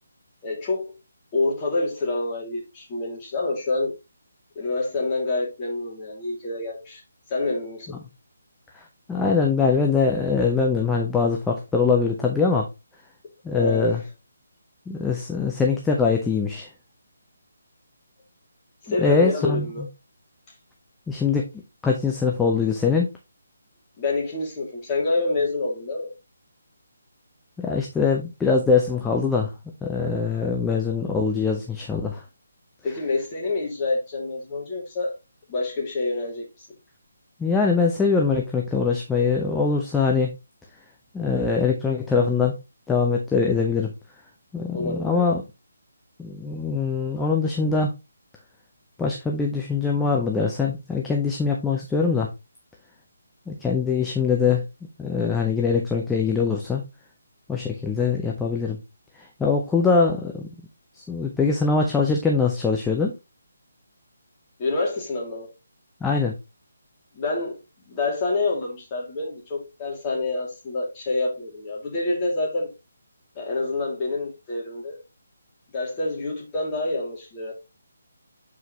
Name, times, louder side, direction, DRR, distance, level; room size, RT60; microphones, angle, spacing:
voice 1, 0.4-0.9 1.3-3.9 4.5-7.0 7.3-8.0 13.5-14.0 18.8-19.8 24.0-26.1 32.8-35.1 35.5-36.4 44.7-45.3 64.6-65.5 67.1-67.6 67.9-72.7 73.3-75.0 75.7-77.5, left 3 dB, 20° left, 2.6 m, -27 dB
voice 2, 9.1-12.6 13.4-14.0 14.9-16.7 19.0-19.9 21.1-21.5 21.8-23.1 27.6-29.5 29.8-32.2 37.4-40.3 41.1-42.6 42.9-43.9 44.5-45.4 46.2-47.9 49.0-52.3 53.5-54.6 55.0-56.8 57.5-58.8 59.4-60.5 61.1-63.1 66.0-66.3, left 5 dB, 5° left, 0.7 m, -22 dB
7.8 x 4.8 x 3.1 m
figure-of-eight pair, 145°, 0 cm